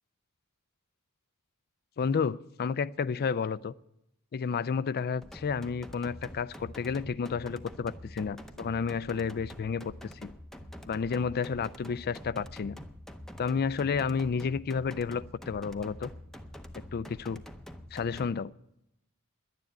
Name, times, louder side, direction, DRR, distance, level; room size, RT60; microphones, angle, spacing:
voice 1, 2.0-3.7 4.3-9.9 10.2-10.3 10.9-12.8 13.4-16.1 16.9-17.4 17.9-18.5, left 5 dB, 45° left, 0.4 m, -31 dB
sound 1, 5.2-18.3, equal, ahead, 0.7 m, -46 dB
11.0 x 9.5 x 8.9 m
head